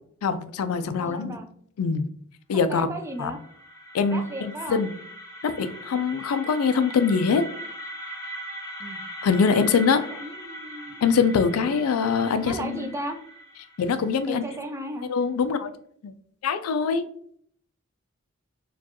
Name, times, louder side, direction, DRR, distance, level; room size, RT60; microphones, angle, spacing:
voice 1, 0.2-1.4 1.8-2.1 2.5-2.9 3.2-3.3 3.9-4.9 5.4-7.5 9.2-10.1 11.0-12.9 13.8-14.4 15.1-15.7 16.0-16.1 16.4-17.1, left 5 dB, 90° left, 0.4 m, -23 dB
voice 2, 1.0-1.5 2.7-3.4 4.1-4.8 8.8-9.0 9.6-11.0 11.5-11.8 12.4-13.2 14.3-15.1, right 1 dB, 15° right, 0.4 m, -35 dB
sound 1, 2.9-14.8, equal, 15° left, 0.7 m, -41 dB
4.4 x 2.3 x 2.8 m
head